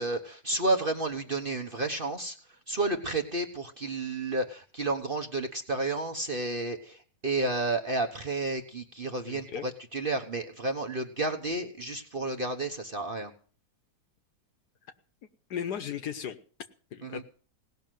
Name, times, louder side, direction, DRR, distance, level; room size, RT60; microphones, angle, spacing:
voice 1, 0.0-2.4 2.7-13.3 17.0-17.2, right 2 dB, 35° right, 4 dB, 1.1 m, -31 dB
voice 2, 9.3-9.6 15.5-16.4 16.9-17.2, left 8 dB, 65° left, 11 dB, 1.4 m, -35 dB
18.0 x 6.4 x 9.1 m, 0.42 s
omnidirectional pair, 2.0 m